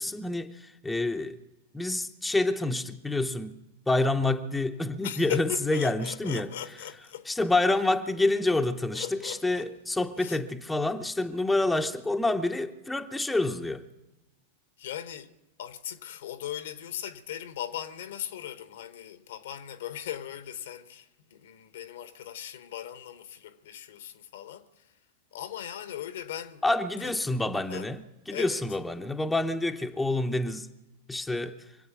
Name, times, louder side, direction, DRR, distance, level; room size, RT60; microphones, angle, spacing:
voice 1, 0.0-1.4 1.7-3.5 3.9-6.5 7.3-13.8 26.6-28.0 28.3-30.7 31.1-31.6, left 2 dB, 5° left, 0.8 m, -27 dB
voice 2, 5.0-7.3 8.9-9.7 10.2-10.4 14.8-15.3 15.6-24.9 25.3-26.6 27.0-27.2 27.7-27.9 28.3-28.6, left 11 dB, 60° left, 1.1 m, -39 dB
25.5 x 8.9 x 6.1 m
figure-of-eight pair, 90°, 0 cm